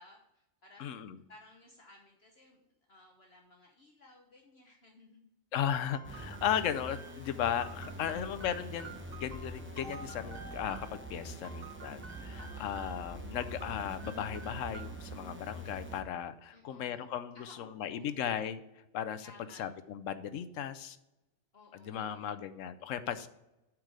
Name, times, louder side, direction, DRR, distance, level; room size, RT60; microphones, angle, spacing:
voice 1, 0.0-5.2 7.9-8.3 11.1-11.7 12.2-12.9 16.5-17.1 17.3-18.1 19.2-19.7 21.5-22.4, left 2 dB, 50° left, 1 dB, 1.2 m, -58 dB
voice 2, 0.8-1.2 5.5-18.6 18.9-19.3 19.6-21.0 21.7-23.3, left 9 dB, 75° left, 12 dB, 1.0 m, -36 dB
sound 1, 5.9-11.0 11.4-13.1 13.4-15.1, right 4 dB, 45° right, 1.0 m, -52 dB
sound 2, 6.0-16.0, right 1 dB, 10° right, 0.8 m, -45 dB
sound 3, 9.8-13.8, left 1 dB, 75° right, 2.3 m, -54 dB
8.4 x 4.7 x 6.3 m, 0.92 s
omnidirectional pair, 1.4 m